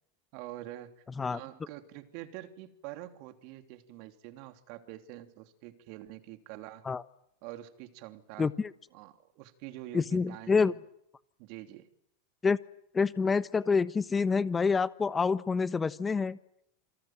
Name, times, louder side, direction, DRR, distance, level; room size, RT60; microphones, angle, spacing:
voice 1, 0.3-6.9 7.4-8.5 8.9-10.7 11.4-11.9, right 15 dB, 55° right, 7 dB, 3.1 m, -46 dB
voice 2, 8.4-8.7 9.9-10.7 12.4-12.6 12.9-16.4, left 5 dB, 20° left, 15 dB, 1.0 m, -27 dB
28.0 x 24.5 x 7.7 m, 0.75 s
hypercardioid pair, 95°, 0 cm